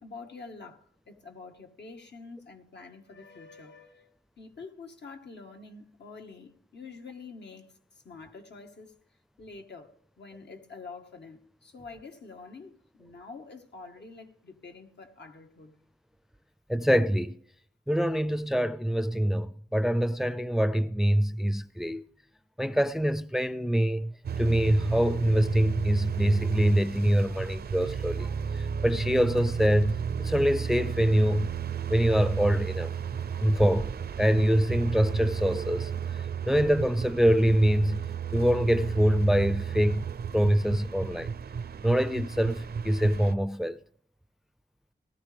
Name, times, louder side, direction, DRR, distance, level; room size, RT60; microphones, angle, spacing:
voice 1, 0.0-7.7 8.0-9.0 9.4-15.8, left 4 dB, 80° left, 1.5 m, -47 dB
voice 2, 16.7-17.4 17.9-22.0 22.6-24.1 24.4-31.5 31.9-32.9 33.4-35.9 36.5-38.0 38.3-40.1 40.3-41.3 41.8-43.8, equal, ahead, 0.4 m, -25 dB
sound 1, 24.2-43.3, right 7 dB, 65° right, 0.5 m, -33 dB
18.0 x 13.0 x 3.4 m
wide cardioid pair, 90°, 18 cm